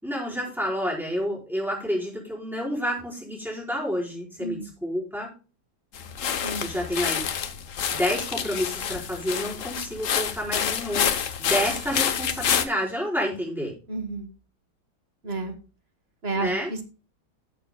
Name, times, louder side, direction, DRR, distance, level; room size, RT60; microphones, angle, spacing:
voice 1, 0.0-5.3 6.6-7.2 7.9-11.1 11.4-13.7 16.4-16.7, equal, ahead, -5 dB, 4.4 m, -29 dB
voice 2, 4.4-4.7 6.4-6.7 13.9-14.3 15.2-15.5 16.2-16.8, right 3 dB, 35° right, 6 dB, 1.3 m, -31 dB
sound 1, 5.9-12.6, left 8 dB, 60° left, 0.9 m, -28 dB
18.0 x 6.8 x 2.2 m, 0.34 s
omnidirectional pair, 2.3 m